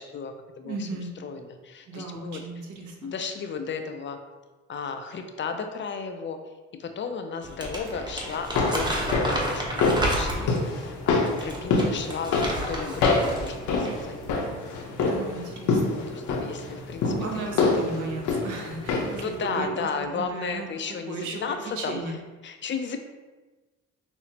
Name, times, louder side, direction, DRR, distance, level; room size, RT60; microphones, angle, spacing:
voice 1, 0.0-2.4 3.0-4.2 4.7-6.4 6.7-14.2 16.1-17.5 19.2-22.2 22.4-23.0, left 5 dB, 40° left, 6 dB, 0.4 m, -34 dB
voice 2, 0.6-1.1 1.9-3.1 15.0-16.0 17.0-19.9 20.1-20.7 21.1-21.4 21.8-22.1, right 3 dB, 75° right, 1 dB, 0.8 m, -35 dB
Crumpling crinkling, 7.4-10.7 11.3-13.5 13.8-14.0, right 1 dB, 15° right, 0.8 m, -31 dB
sound 1, 8.3-19.3 19.6-19.7, left 3 dB, 75° left, 0.7 m, -26 dB
5.7 x 2.0 x 2.8 m, 1.2 s
cardioid pair, 90°, 30 cm